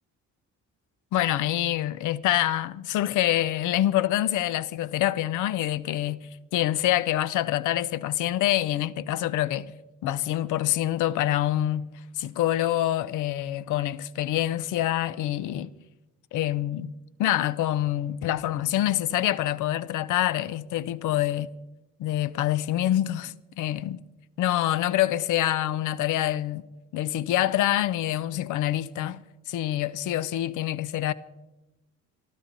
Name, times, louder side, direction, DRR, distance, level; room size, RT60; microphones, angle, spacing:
voice 1, 1.1-9.7 10.0-11.9 12.2-15.7 16.3-16.9 17.2-21.5 22.0-24.0 24.4-26.6 26.9-29.2 29.5-31.1, left 13 dB, 90° left, 0.7 m, -26 dB
23.5 x 13.5 x 4.0 m
cardioid pair, 90°, 30 cm